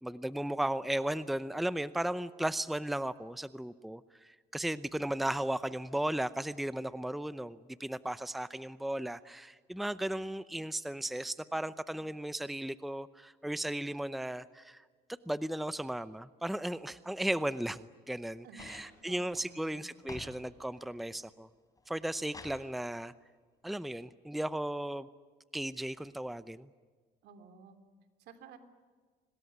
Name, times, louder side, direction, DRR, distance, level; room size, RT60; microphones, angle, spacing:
voice 1, 0.0-14.8 15.3-21.5 21.9-23.1 23.6-25.1 25.5-26.7, right 1 dB, ahead, 15 dB, 0.7 m, -35 dB
voice 2, 18.4-19.8 27.2-27.8 28.2-28.6, right 6 dB, 75° right, 8 dB, 3.1 m, -54 dB
sound 1, 18.6-20.4 20.7-21.3 21.8-22.6 23.8-23.9, left 3 dB, 20° left, 4.1 m, -50 dB
25.5 x 19.5 x 9.6 m, 1.5 s
cardioid pair, 110°, 17 cm